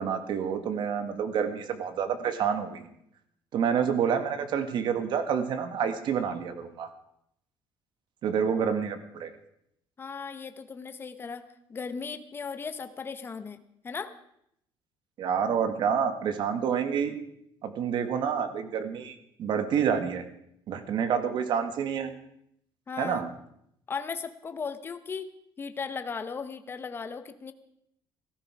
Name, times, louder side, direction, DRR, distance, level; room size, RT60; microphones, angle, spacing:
voice 1, 0.0-2.9 3.5-6.9 8.2-9.3 15.2-17.2 17.6-20.2 20.7-22.1 23.0-23.3, right 7 dB, 55° right, 9 dB, 1.7 m, -28 dB
voice 2, 10.0-11.4 11.7-14.2 22.9-23.3 23.9-25.3 25.6-27.5, left 5 dB, 25° left, 9 dB, 1.0 m, -37 dB
17.0 x 14.5 x 4.8 m, 0.75 s
cardioid pair, 160°, 9 cm